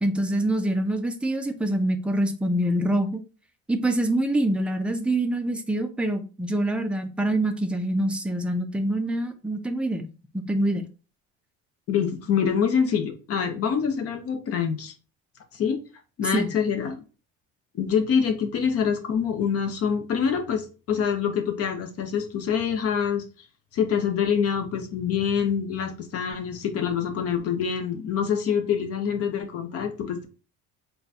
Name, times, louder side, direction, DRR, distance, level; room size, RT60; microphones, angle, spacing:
voice 1, 0.0-3.2 3.7-10.1 10.3-10.8 16.3-16.5, right 1 dB, 5° right, 0.4 m, -25 dB
voice 2, 11.9-14.9 15.5-15.8 16.2-17.0 17.8-23.2 23.7-30.3, left 7 dB, 50° left, 0.9 m, -25 dB
3.9 x 2.3 x 4.1 m
cardioid pair, 135°, 31 cm